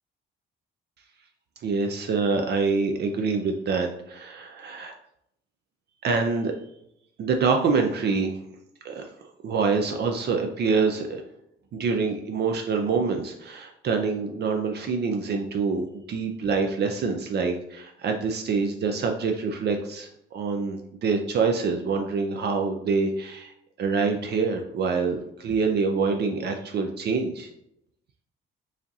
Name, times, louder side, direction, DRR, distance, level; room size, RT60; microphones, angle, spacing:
voice 1, 1.6-4.9 6.0-6.5 7.2-8.4 8.8-9.1 9.4-11.2 11.7-23.5 23.8-27.5, right 4 dB, 55° right, 4 dB, 0.5 m, -26 dB
4.8 x 2.7 x 2.7 m, 0.77 s
cardioid pair, 90°, 20 cm